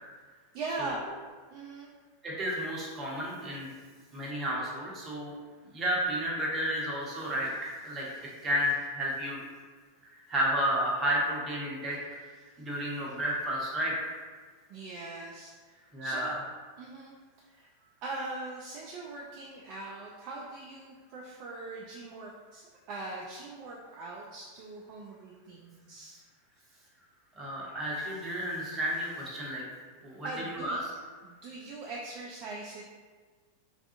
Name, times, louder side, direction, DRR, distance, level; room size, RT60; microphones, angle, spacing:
voice 1, 0.5-1.0 1.5-1.9 14.7-16.4 16.8-17.1 17.5-17.7 18.0-26.2 30.2-30.8 31.2-32.8, right 3 dB, 40° right, -3 dB, 0.3 m, -41 dB
voice 2, 2.2-3.7 4.1-5.4 5.6-8.1 8.4-9.4 10.3-12.0 12.6-14.1 15.9-16.3 27.4-29.6 30.0-30.8, equal, 25° right, -4 dB, 0.8 m, -32 dB
3.3 x 2.4 x 2.5 m, 1.5 s
figure-of-eight pair, 90°, 0 cm